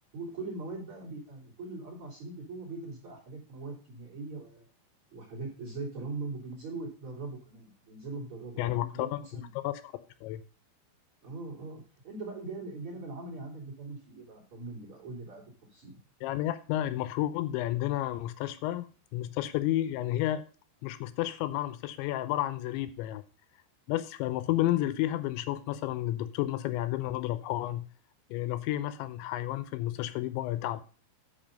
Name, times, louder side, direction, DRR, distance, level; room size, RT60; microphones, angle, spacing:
voice 1, 0.1-4.6 5.1-9.1 9.3-9.5 11.2-16.0, right 3 dB, 30° right, 3.6 m, -41 dB
voice 2, 8.6-9.9 10.2-10.4 16.2-18.9 19.1-20.4 20.8-23.2 23.9-27.8 28.3-30.8, left 14 dB, 85° left, 2.9 m, -31 dB
8.9 x 5.7 x 5.2 m
omnidirectional pair, 5.3 m